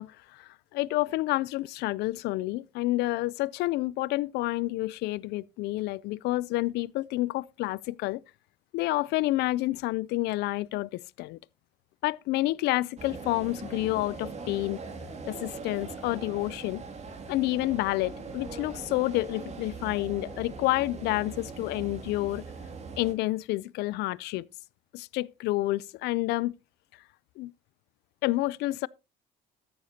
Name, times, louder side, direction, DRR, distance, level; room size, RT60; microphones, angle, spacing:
voice 1, 0.0-8.2 8.7-11.4 12.0-14.8 15.3-16.8 17.3-22.4 23.0-24.5 24.9-26.5 27.4-27.5 28.2-28.9, left 18 dB, 85° left, 0.4 m, -29 dB
sound 1, 13.0-23.1, right 4 dB, 40° right, 2.5 m, -41 dB
13.5 x 9.4 x 2.8 m
cardioid pair, 110°, 17 cm